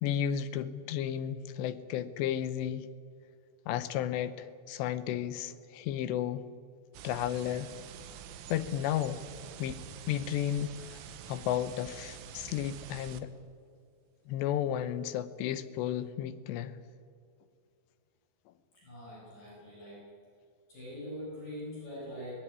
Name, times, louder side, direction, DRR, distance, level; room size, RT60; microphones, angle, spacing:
voice 1, 0.0-2.9 3.7-6.4 7.0-7.7 8.5-9.2 9.6-9.8 10.1-13.3 14.3-16.8, left 10 dB, 80° left, 13 dB, 2.7 m, -33 dB
sound 1, 6.9-13.2, right 8 dB, 80° right, 3.3 m, -47 dB
voice 2, 18.8-20.1 20.7-22.3, equal, 45° left, -6 dB, 8.0 m, -43 dB
19.5 x 16.0 x 9.7 m, 2.3 s
omnidirectional pair, 5.4 m